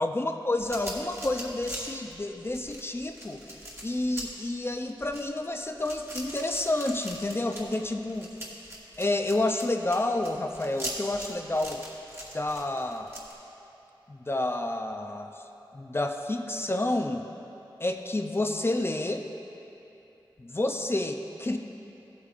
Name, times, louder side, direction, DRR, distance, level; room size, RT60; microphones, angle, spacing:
voice 1, 0.0-3.6 3.8-8.3 9.0-11.8 12.3-13.1 14.1-15.3 15.7-17.3 17.8-19.2 20.4-21.6, left 2 dB, 30° left, 5 dB, 0.5 m, -29 dB
sound 1, 0.6-13.3, right 1 dB, 30° right, 1.6 m, -41 dB
15.0 x 8.2 x 2.5 m, 2.9 s
wide cardioid pair, 85°, 8 cm